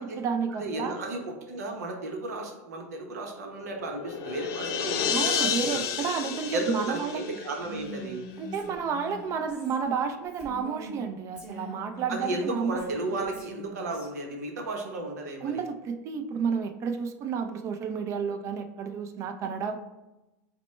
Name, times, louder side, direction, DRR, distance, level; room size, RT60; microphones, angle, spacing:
voice 1, 0.0-1.0 5.1-7.2 8.4-12.8 15.4-19.8, right 6 dB, 35° right, 7 dB, 0.4 m, -31 dB
voice 2, 0.6-5.9 6.5-8.3 12.1-15.6, right 2 dB, 90° right, 2 dB, 0.8 m, -34 dB
sound 1, 3.6-8.2, left 7 dB, 45° left, 0.6 m, -31 dB
Female speech woman speaking, 7.6-11.0 11.4-14.1, equal, 10° right, 0.9 m, -43 dB
4.2 x 2.1 x 3.1 m, 1.0 s
supercardioid pair, 115°, 9 cm